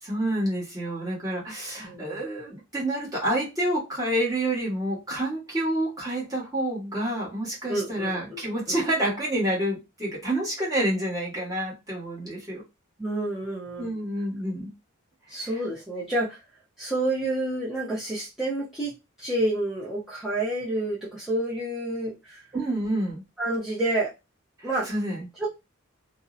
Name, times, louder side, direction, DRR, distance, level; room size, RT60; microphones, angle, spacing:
voice 1, 0.0-12.6 13.8-14.7 22.5-23.2 24.6-25.3, right 1 dB, 15° right, -5 dB, 1.1 m, -28 dB
voice 2, 1.8-2.2 7.7-8.8 13.0-13.9 15.3-16.4 16.8-22.5 23.4-24.1 24.6-24.9, right 1 dB, ahead, -8 dB, 0.5 m, -29 dB
2.5 x 2.0 x 2.4 m, 0.24 s
head